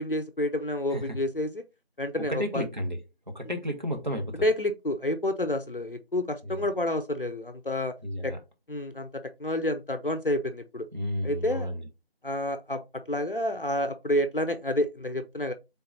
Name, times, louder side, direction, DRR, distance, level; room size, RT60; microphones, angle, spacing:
voice 1, 0.0-1.6 2.0-2.7 4.4-7.9 8.2-8.3 8.7-10.9 11.2-11.7 12.2-12.8 13.1-15.5, left 1 dB, 60° left, 0.6 m, -29 dB
voice 2, 2.1-3.0 3.3-4.5 6.4-6.7 8.0-8.4 10.9-11.9, equal, 45° right, 1.0 m, -32 dB
3.7 x 2.9 x 3.8 m
figure-of-eight pair, 180°, 31 cm